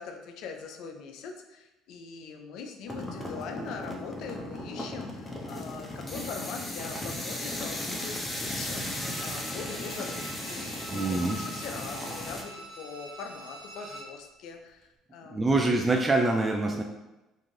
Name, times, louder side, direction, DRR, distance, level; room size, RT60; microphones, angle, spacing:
voice 1, 0.0-10.7 10.9-15.8, left 5 dB, 65° left, 4 dB, 0.4 m, -42 dB
sound 1, 2.9-12.4, left 1 dB, 15° left, 0.6 m, -36 dB
Bowed string instrument, 9.0-14.2 14.5-14.6, right 2 dB, 40° right, 1.0 m, -45 dB
voice 2, 10.9-11.4 15.3-16.8, right 2 dB, 20° right, 1 dB, 0.3 m, -25 dB
2.6 x 2.4 x 3.1 m, 0.99 s
hypercardioid pair, 70°, 0 cm